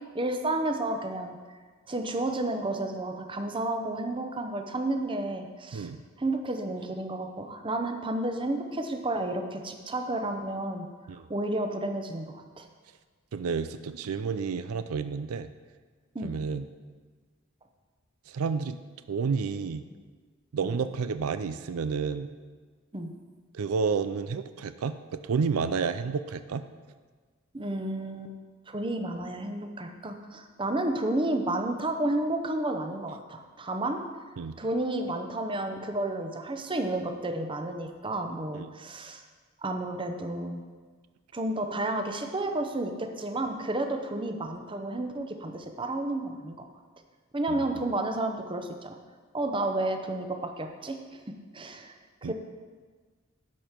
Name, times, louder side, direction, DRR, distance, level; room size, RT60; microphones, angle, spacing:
voice 1, 0.1-1.4 1.9-5.9 6.2-10.9 11.3-12.7 16.1-16.4 20.6-20.8 22.9-23.1 27.5-28.3 28.7-34.0 34.6-39.2 39.6-40.6 41.3-46.6 47.3-49.0 49.3-51.0 51.5-51.9 52.2-52.3, right 2 dB, 25° right, 5 dB, 0.8 m, -31 dB
voice 2, 13.3-15.5 16.2-16.7 18.3-18.8 19.1-19.8 20.5-22.3 23.5-26.6 34.4-34.6 38.5-38.7 47.5-47.7 52.2-52.3, right 5 dB, 85° right, 11 dB, 0.4 m, -30 dB
11.5 x 5.0 x 5.8 m, 1.5 s
head